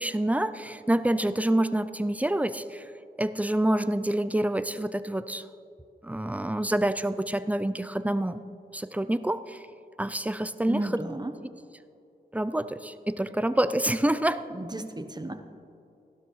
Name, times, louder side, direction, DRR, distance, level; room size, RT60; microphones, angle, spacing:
voice 1, 0.0-2.8 3.2-5.4 6.0-8.4 8.7-9.6 10.0-10.8 12.3-14.4, right 1 dB, 10° right, 12 dB, 0.5 m, -27 dB
voice 2, 10.7-11.3 14.5-15.4, right 1 dB, 25° right, 7 dB, 0.9 m, -33 dB
16.0 x 12.0 x 3.2 m, 2.7 s
cardioid pair, 45°, 18 cm